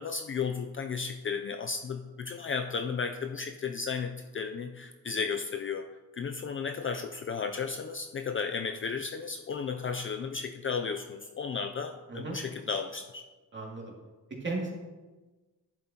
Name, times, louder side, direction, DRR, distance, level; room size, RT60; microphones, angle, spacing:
voice 1, 0.0-5.9 6.1-13.2, left 5 dB, 35° left, 6 dB, 0.5 m, -34 dB
voice 2, 13.5-13.9 14.4-14.7, right 3 dB, 30° right, -2 dB, 2.5 m, -35 dB
10.5 x 7.7 x 2.9 m, 1.2 s
cardioid pair, 105°, 38 cm